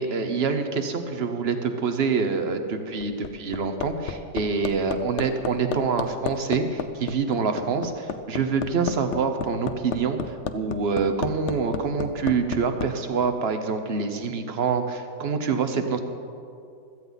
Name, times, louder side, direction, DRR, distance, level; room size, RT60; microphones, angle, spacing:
voice 1, 0.0-16.0, right 5 dB, 45° right, 7 dB, 1.0 m, -26 dB
Hammer, 2.8-12.9 14.2-14.3, left 7 dB, 65° left, 0.7 m, -31 dB
16.5 x 13.5 x 4.1 m, 2.5 s
omnidirectional pair, 1.9 m